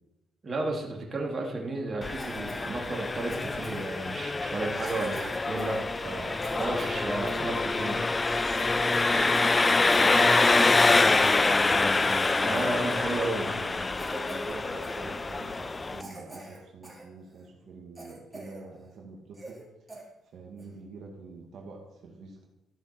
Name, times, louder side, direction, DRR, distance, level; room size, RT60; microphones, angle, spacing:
voice 1, 0.4-8.1 12.4-13.6, right 2 dB, 35° right, -1 dB, 2.5 m, -33 dB
Engine, 2.0-16.0, left 3 dB, 25° left, 0.3 m, -26 dB
Cough, 2.1-2.7 3.3-4.0 4.7-7.4 7.9-8.0 8.2-9.6 9.9-11.3 11.8-11.9 12.2-13.1 13.4-13.6 14.0-14.6 14.8-15.0 15.5-15.6 16.0-17.1 17.4-17.5 18.0-18.6 18.9-19.0 19.3-19.6 19.9-20.0 20.6-20.8, right 2 dB, 15° right, 2.8 m, -44 dB
voice 2, 7.1-7.6 8.7-12.6 13.3-19.6 20.0-22.5, right 4 dB, 70° right, 0 dB, 1.8 m, -45 dB
14.0 x 5.8 x 4.4 m, 0.94 s
cardioid pair, 90°, 0 cm